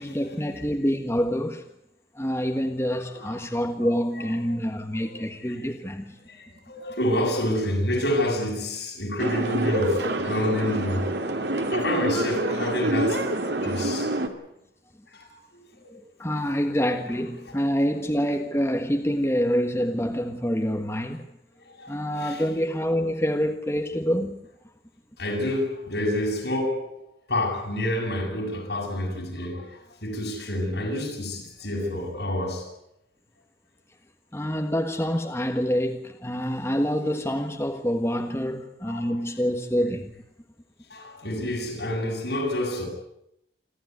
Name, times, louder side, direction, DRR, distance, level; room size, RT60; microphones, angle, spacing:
voice 1, 0.0-1.6 2.1-6.1 16.2-21.2 21.9-24.4 34.3-40.1, equal, 15° left, 1.5 m, -26 dB
voice 2, 4.9-5.3 5.7-5.8 6.3-11.1 11.7-13.3 13.6-14.1 15.8-15.9 21.8-21.9 22.2-22.4 25.2-27.0 27.3-29.7 30.0-32.7 38.9-39.1 40.9-42.9, left 1 dB, 75° left, 7.7 m, -28 dB
sound 1, 9.2-14.3, right 1 dB, 85° right, 2.5 m, -27 dB
28.0 x 12.5 x 9.5 m
head